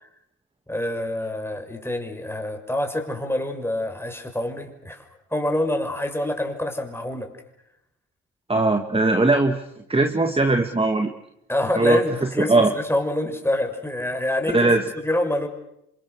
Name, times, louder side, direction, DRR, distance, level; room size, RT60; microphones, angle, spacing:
voice 1, 0.7-5.0 5.3-7.3 11.5-14.7 15.0-15.5, left 1 dB, 5° left, 4 dB, 6.3 m, -26 dB
voice 2, 8.5-9.6 9.9-11.1 11.8-12.0 12.5-12.7 14.5-14.8, right 2 dB, 15° right, 6 dB, 2.1 m, -19 dB
29.5 x 25.5 x 6.6 m, 0.80 s
hypercardioid pair, 50°, 36 cm